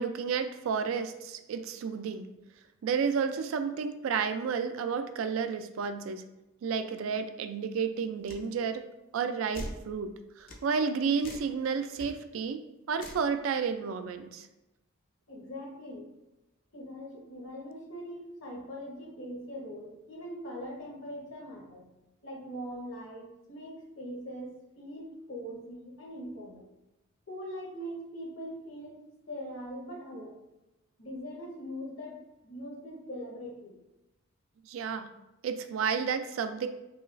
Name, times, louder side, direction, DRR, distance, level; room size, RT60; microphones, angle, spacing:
voice 1, 0.0-2.3 2.8-6.2 6.6-8.9 9.1-14.5 34.7-35.1 35.4-36.7, right 6 dB, 75° right, 9 dB, 0.3 m, -31 dB
sound 1, 8.3-8.5 9.5-9.8 10.5-10.7 11.2-11.5 11.9-12.1 13.0-13.3, left 1 dB, 40° left, 0.5 m, -41 dB
voice 2, 15.3-16.1 16.7-21.8 22.2-26.7 27.3-29.0 29.3-30.4 31.0-33.8, equal, 65° left, -2 dB, 1.0 m, -42 dB
4.9 x 2.4 x 2.5 m, 0.97 s
head